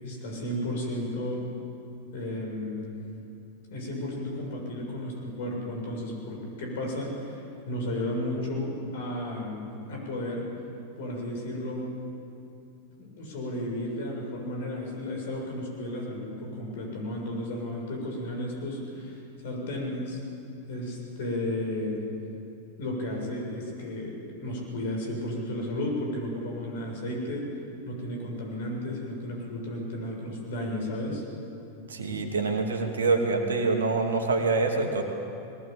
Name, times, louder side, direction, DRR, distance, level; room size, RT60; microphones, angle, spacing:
voice 1, 0.0-1.4 2.1-3.0 3.7-10.4 11.0-11.9 13.0-20.2 20.7-22.0 22.8-27.5 27.8-31.2, left 1 dB, 55° left, 0 dB, 7.0 m, -33 dB
voice 2, 31.9-35.0, right 3 dB, 70° right, 3 dB, 2.6 m, -25 dB
21.5 x 19.0 x 8.9 m, 2.7 s
figure-of-eight pair, 90°, 0 cm